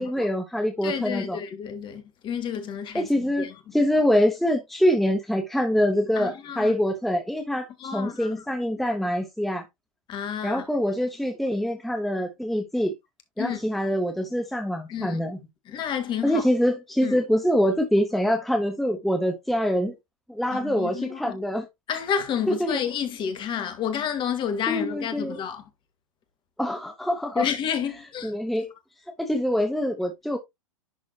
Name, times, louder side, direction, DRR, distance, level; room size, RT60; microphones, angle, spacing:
voice 1, 0.0-1.4 2.9-9.6 10.4-12.9 13.4-15.4 16.2-19.9 20.3-21.7 22.5-22.8 24.7-25.4 26.6-27.5 28.2-28.7 29.2-30.4, equal, ahead, 1.1 m, -25 dB
voice 2, 0.8-3.5 6.2-6.8 7.8-8.4 10.1-10.6 13.4-13.6 14.9-15.2 15.7-16.4 17.0-17.2 20.5-21.4 21.9-25.6 27.4-28.3, left 8 dB, 30° left, 1.8 m, -30 dB
11.0 x 4.1 x 2.9 m
figure-of-eight pair, 105°, 18 cm